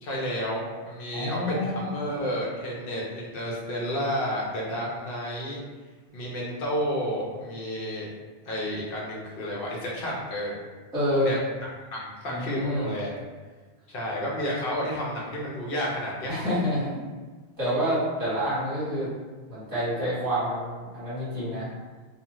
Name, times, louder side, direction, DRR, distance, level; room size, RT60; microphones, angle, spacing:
voice 1, 0.0-5.6 6.1-8.1 8.5-10.6 11.1-11.4 11.9-13.2 13.9-16.3, equal, 60° left, -4 dB, 0.8 m, -31 dB
voice 2, 1.1-1.9 10.9-11.4 12.2-12.9 16.3-17.0 17.6-19.1 19.5-21.7, equal, 20° right, -11 dB, 1.3 m, -28 dB
2.4 x 2.3 x 2.9 m, 1.4 s
omnidirectional pair, 1.1 m